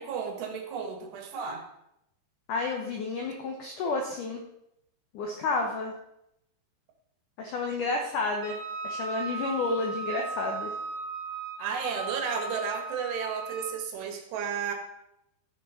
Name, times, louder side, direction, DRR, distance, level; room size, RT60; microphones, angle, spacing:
voice 1, 0.0-1.6 11.6-14.7, right 6 dB, 70° right, 4 dB, 3.5 m, -33 dB
voice 2, 2.5-4.4 5.1-5.9 7.4-8.6 8.8-10.7, left 3 dB, 75° left, 2 dB, 1.9 m, -30 dB
Wind instrument woodwind instrument, 8.4-13.8, right 4 dB, 35° right, 3.7 m, -37 dB
13.0 x 6.3 x 5.7 m, 0.82 s
omnidirectional pair, 5.2 m